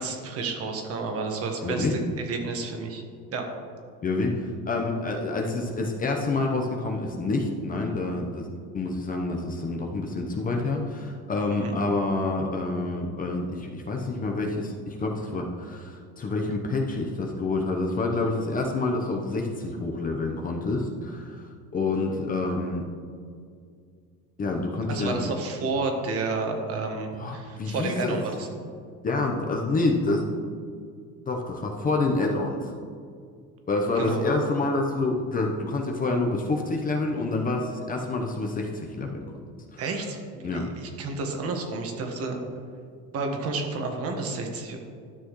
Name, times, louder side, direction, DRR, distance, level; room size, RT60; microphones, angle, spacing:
voice 1, 0.0-2.0 2.3-3.0 3.3-3.5 11.6-11.7 24.9-28.5 34.0-34.2 39.8-42.4 43.1-44.8, right 3 dB, 50° right, 3 dB, 1.5 m, -30 dB
voice 2, 1.6-2.0 4.0-8.5 8.7-22.8 24.4-25.2 27.2-28.2 29.0-30.3 31.3-32.7 33.7-39.3 39.7-39.8 40.4-40.7, left 2 dB, 25° left, 1 dB, 0.9 m, -27 dB
12.5 x 6.2 x 3.2 m, 2.2 s
cardioid pair, 125°, 30 cm